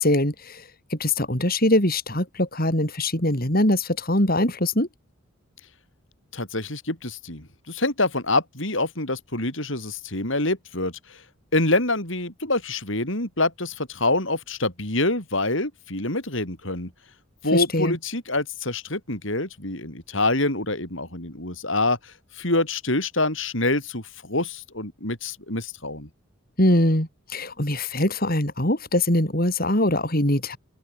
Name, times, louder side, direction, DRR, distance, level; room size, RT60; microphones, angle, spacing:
voice 1, 0.0-4.9 17.5-18.0 26.6-30.6, left 1 dB, 45° left, 6.1 m, -22 dB
voice 2, 6.3-11.2 11.5-16.9 17.4-26.1, left 2 dB, 60° left, 6.9 m, -26 dB
head